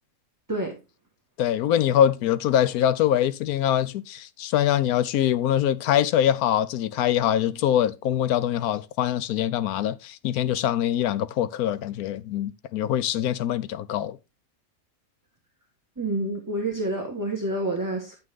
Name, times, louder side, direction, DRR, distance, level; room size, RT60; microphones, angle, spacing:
voice 1, 1.4-14.2, left 10 dB, 85° left, 1.1 m, -23 dB
voice 2, 16.0-18.2, right 2 dB, 15° right, 1.3 m, -28 dB
9.5 x 6.0 x 3.6 m
omnidirectional pair, 1.5 m